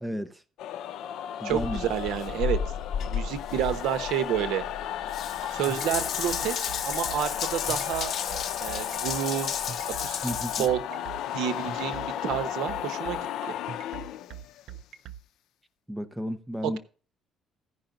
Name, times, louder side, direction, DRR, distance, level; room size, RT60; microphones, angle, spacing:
voice 1, 0.0-0.4 1.4-1.9 10.2-10.7 15.9-16.8, equal, 5° right, 0.8 m, -33 dB
sound 1, 0.6-14.8, left 11 dB, 75° left, 0.6 m, -35 dB
voice 2, 1.4-2.6 3.0-4.6 5.5-8.1 8.6-9.6 10.0-10.2 10.6-13.2 13.5-13.6 16.6-16.8, right 10 dB, 85° right, 1.0 m, -30 dB
Water tap faucet / Bathtub (filling or washing) / Drip, 1.5-10.7, left 8 dB, 55° left, 1.0 m, -33 dB
sound 2, 5.4-15.2, right 9 dB, 65° right, 0.6 m, -41 dB
15.5 x 5.6 x 3.9 m
cardioid pair, 130°, 0 cm